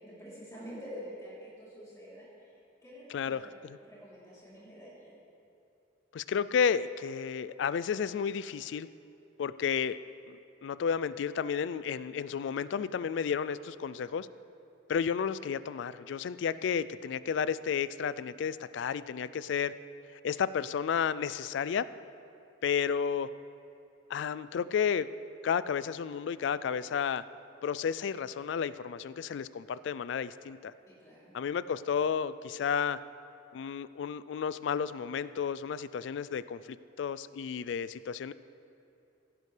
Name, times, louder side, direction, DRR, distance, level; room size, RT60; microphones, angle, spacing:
voice 1, 0.0-5.1 30.8-31.3, equal, 15° left, -8 dB, 3.3 m, -47 dB
voice 2, 3.1-3.8 6.1-8.9 9.4-10.0 10.3-14.3 14.9-19.7 20.2-21.9 22.6-23.3 24.1-25.1 25.4-27.2 27.6-30.7 31.3-33.0 33.5-38.3, left 7 dB, 65° left, 16 dB, 0.3 m, -32 dB
16.0 x 11.0 x 3.3 m, 2.7 s
head